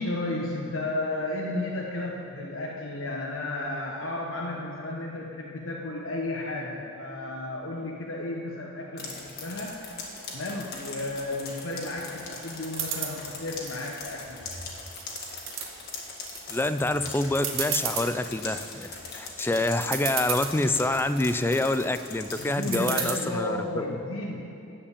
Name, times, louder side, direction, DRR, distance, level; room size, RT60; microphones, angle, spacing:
voice 1, 0.0-9.8 10.3-14.4 22.4-24.6, left 2 dB, 80° left, -2 dB, 1.0 m, -33 dB
sound 1, 9.0-23.1, left 3 dB, 50° left, 1.8 m, -41 dB
sound 2, 12.7-13.1 13.7-14.5 14.9-15.7 16.2-16.6 17.0-17.1 17.3-18.1 18.6-19.0 19.5-19.6 19.8-20.5 21.1-21.6 22.7-23.1, right 8 dB, 80° right, 1.3 m, -32 dB
voice 2, 16.5-24.0, left 2 dB, 10° left, 11 dB, 0.3 m, -27 dB
14.0 x 5.1 x 8.7 m, 2.7 s
head